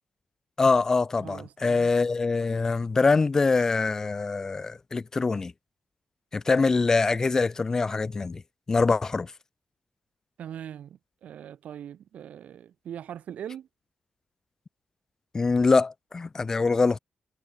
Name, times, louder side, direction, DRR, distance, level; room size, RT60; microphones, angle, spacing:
voice 1, 0.6-5.5 6.3-8.4 8.7-9.3 15.3-17.0, left 4 dB, 25° left, 0.4 m, -24 dB
voice 2, 1.2-1.9 10.4-13.7, right 9 dB, 75° right, 1.2 m, -41 dB
wide cardioid pair, 180°, 2 cm